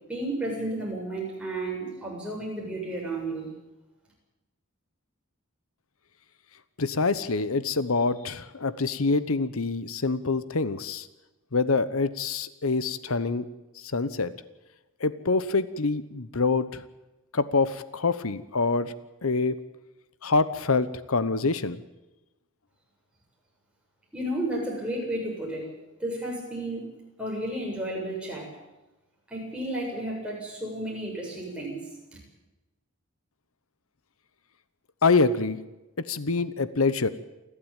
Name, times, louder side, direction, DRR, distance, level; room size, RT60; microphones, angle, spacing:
voice 1, 0.1-3.5 24.1-25.7 26.0-26.9 27.2-28.5 29.3-31.8 32.1-32.2, right 1 dB, 5° right, -2 dB, 7.5 m, -32 dB
voice 2, 6.8-11.1 11.5-13.5 13.8-14.4 15.0-16.8 17.3-18.9 19.2-19.6 20.2-21.8 35.0-35.6 36.0-37.1, left 4 dB, 85° left, 15 dB, 1.0 m, -25 dB
29.0 x 12.5 x 9.0 m, 1.0 s
head